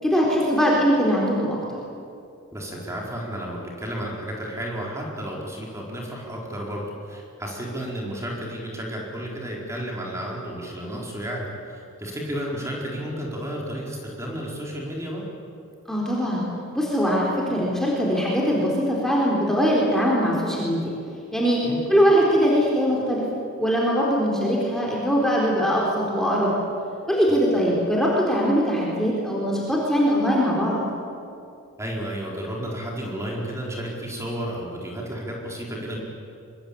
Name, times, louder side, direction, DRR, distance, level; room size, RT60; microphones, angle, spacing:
voice 1, 0.0-1.6 15.9-16.4 16.7-20.8 21.3-21.6 21.9-23.3 23.6-26.5 27.1-30.8, equal, ahead, -4 dB, 4.1 m, -21 dB
voice 2, 2.5-15.2 21.6-21.8 27.3-27.4 31.8-36.0, equal, 15° right, -2 dB, 4.6 m, -32 dB
24.5 x 23.5 x 8.8 m, 2.5 s
head